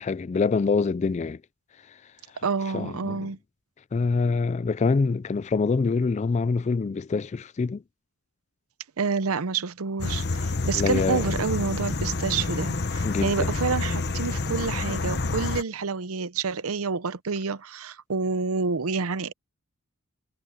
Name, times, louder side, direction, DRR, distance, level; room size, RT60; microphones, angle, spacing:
voice 1, 0.0-1.4 2.7-3.3 3.9-7.8 10.8-11.3 13.0-13.5, left 4 dB, 30° left, 0.3 m, -25 dB
voice 2, 2.4-3.4 9.0-19.3, right 5 dB, 80° right, 0.7 m, -28 dB
sound 1, 10.0-15.6, left 3 dB, 50° left, 1.1 m, -28 dB
head